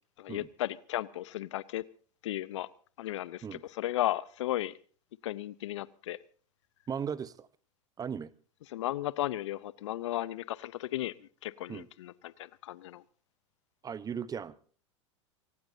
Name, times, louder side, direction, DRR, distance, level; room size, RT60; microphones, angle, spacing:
voice 1, 0.2-1.8 2.2-2.7 3.0-4.8 5.2-6.2 8.7-13.0, left 14 dB, 70° left, 0.7 m, -35 dB
voice 2, 6.9-7.5 8.0-8.3 11.7-11.9 13.8-14.5, right 7 dB, 25° right, 0.9 m, -37 dB
24.5 x 18.5 x 2.7 m
hypercardioid pair, 90°, 16 cm